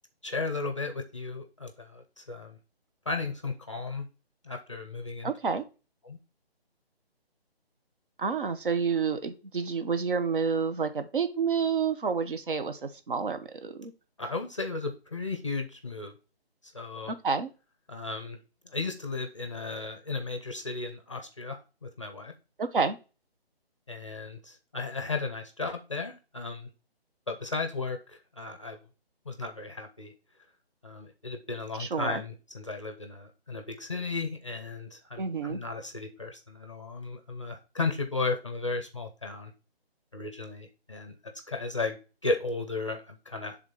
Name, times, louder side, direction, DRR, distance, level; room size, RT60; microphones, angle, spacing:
voice 1, 0.2-2.6 3.1-4.1 4.4-5.3 6.0-6.2 14.2-16.2 16.7-17.1 17.9-18.4 18.6-22.3 23.9-26.7 27.3-28.8 29.3-30.1 30.8-39.5 40.1-43.6, left 3 dB, 30° left, 6 dB, 0.6 m, -35 dB
voice 2, 5.2-5.6 8.2-13.9 17.1-17.5 22.6-23.0 31.8-32.2 35.2-35.6, right 5 dB, 55° right, 9 dB, 0.9 m, -29 dB
6.1 x 3.7 x 5.3 m, 0.32 s
hypercardioid pair, 170°, 32 cm